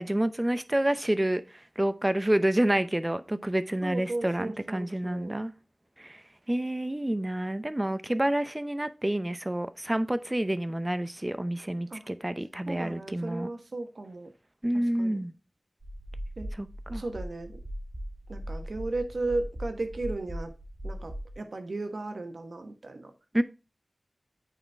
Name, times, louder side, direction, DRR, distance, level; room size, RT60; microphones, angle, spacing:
voice 1, 0.0-1.4 1.8-5.5 6.0-6.2 6.5-13.5 14.6-15.3 16.6-17.0 23.3-23.4, right 1 dB, 20° right, 0.6 m, -28 dB
voice 2, 3.8-5.3 11.9-12.1 12.7-14.3 14.7-15.2 16.4-16.5 16.9-17.6 18.3-20.5 20.8-23.1, right 2 dB, 80° right, 1.2 m, -35 dB
sound 1, 15.8-21.3, equal, 40° right, 4.6 m, -39 dB
9.0 x 4.3 x 3.4 m
wide cardioid pair, 60°, 0 cm